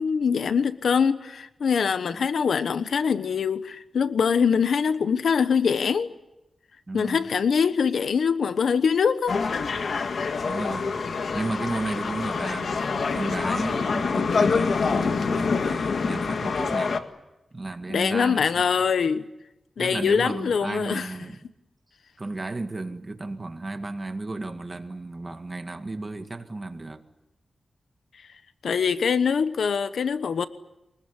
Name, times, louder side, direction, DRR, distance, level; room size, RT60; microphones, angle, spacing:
voice 1, 0.0-6.1 6.9-9.4 17.9-19.3 19.8-21.1 28.6-30.5, left 6 dB, 85° left, 1.0 m, -23 dB
voice 2, 6.9-7.3 10.4-11.0 11.3-17.0 17.5-18.7 19.8-21.4 22.2-27.0, right 2 dB, 30° right, 1.9 m, -33 dB
sound 1, 9.3-17.0, left 4 dB, 70° left, 1.7 m, -26 dB
24.0 x 20.0 x 9.8 m
wide cardioid pair, 120°, 0 cm